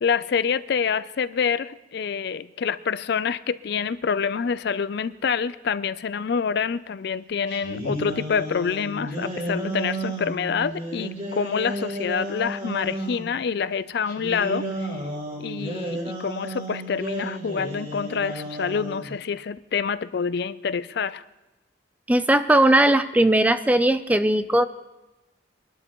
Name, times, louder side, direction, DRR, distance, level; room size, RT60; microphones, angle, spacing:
voice 1, 0.0-14.7 15.4-21.2, left 6 dB, 60° left, 15 dB, 0.4 m, -27 dB
sound 1, 7.5-13.3 14.1-19.1, right 1 dB, 40° right, 6.0 m, -32 dB
voice 2, 22.1-24.7, right 1 dB, 10° right, 12 dB, 0.4 m, -18 dB
23.5 x 12.0 x 3.0 m, 1.0 s
head